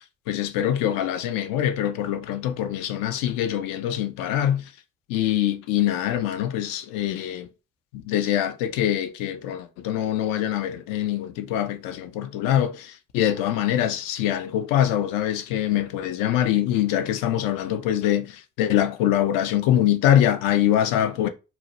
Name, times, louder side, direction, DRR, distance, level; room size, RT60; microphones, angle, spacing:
voice 1, 0.3-4.6 5.1-7.5 8.1-21.3, left 11 dB, 65° left, 0.5 m, -24 dB
2.7 x 2.1 x 2.8 m
hypercardioid pair, 45°, 35 cm